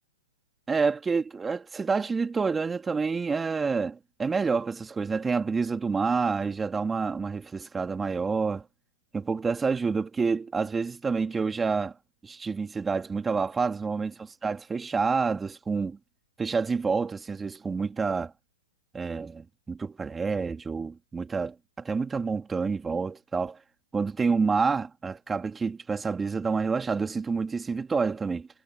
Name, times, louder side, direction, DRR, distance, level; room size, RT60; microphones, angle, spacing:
voice 1, 0.7-8.6 9.1-11.9 12.2-14.1 14.4-16.0 16.4-18.3 18.9-21.5 21.8-23.6 23.9-28.5, right 4 dB, 10° right, 2.7 m, -28 dB
hypercardioid pair, 130°, 0 cm